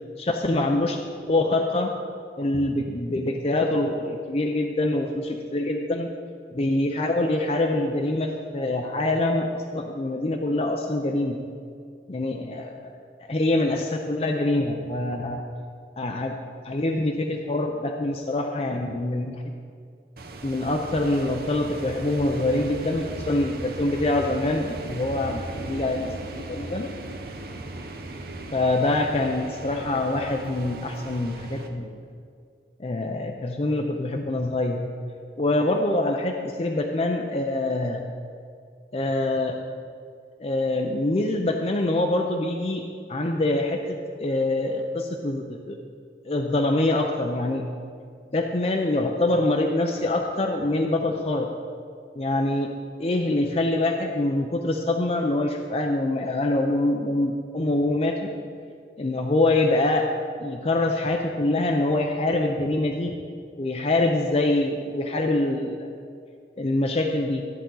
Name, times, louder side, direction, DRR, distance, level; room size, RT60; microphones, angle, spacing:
voice 1, 0.2-1.0 1.3-2.0 2.4-6.1 6.5-11.4 12.1-12.9 13.3-15.4 16.0-16.4 16.6-19.4 20.4-26.1 26.5-26.9 28.5-32.0 32.8-34.8 35.4-38.0 38.9-39.6 40.4-45.8 46.2-47.7 48.3-51.5 52.2-52.7 53.0-58.3 59.0-60.1 60.4-63.1 63.6-65.9 66.6-67.5, left 2 dB, 35° left, 3 dB, 0.5 m, -25 dB
sound 1, 20.2-31.7, right 2 dB, 60° right, 0.8 m, -37 dB
13.5 x 8.3 x 3.8 m, 2.2 s
head